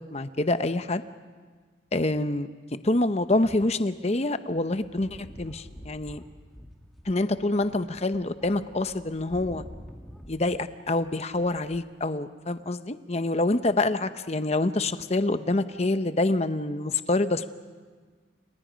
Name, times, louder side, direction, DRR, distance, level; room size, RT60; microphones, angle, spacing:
voice 1, 0.1-1.0 1.9-6.2 7.1-9.6 10.3-17.5, left 2 dB, 35° left, 11 dB, 0.9 m, -26 dB
sound 1, 4.7-10.7 10.9-11.8, equal, ahead, 2.3 m, -47 dB
30.0 x 29.0 x 5.2 m, 1.5 s
head